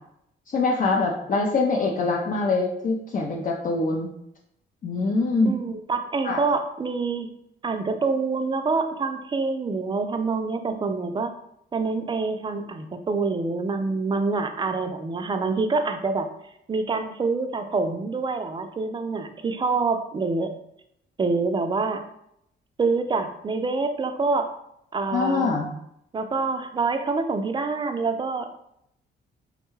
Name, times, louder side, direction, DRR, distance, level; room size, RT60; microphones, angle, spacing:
voice 1, 0.5-4.1 4.8-5.5 6.2-6.4 25.1-25.7, left 3 dB, 45° left, -1 dB, 0.5 m, -24 dB
voice 2, 1.8-2.1 5.4-7.3 7.6-11.4 11.7-16.3 16.7-20.6 21.2-22.0 22.8-24.5 24.9-25.6 26.1-28.6, right 4 dB, 25° right, 7 dB, 0.4 m, -26 dB
3.6 x 2.2 x 3.1 m, 0.75 s
cardioid pair, 90°, 20 cm